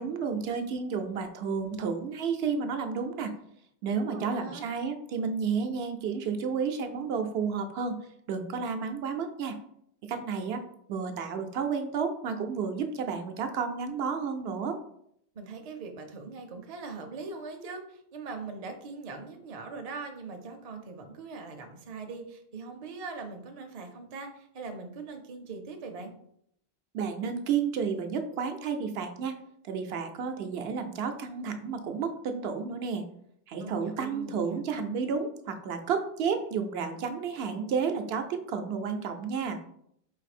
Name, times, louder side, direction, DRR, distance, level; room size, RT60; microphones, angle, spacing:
voice 1, 0.0-3.3 3.8-8.0 8.3-9.6 10.0-10.6 10.9-14.8 26.9-29.4 29.6-33.0 33.5-39.6, right 6 dB, 80° right, 6 dB, 0.8 m, -31 dB
voice 2, 3.9-4.6 15.3-26.1 33.6-34.7, right 4 dB, 45° right, 5 dB, 0.6 m, -41 dB
4.3 x 2.7 x 4.1 m, 0.70 s
omnidirectional pair, 1.0 m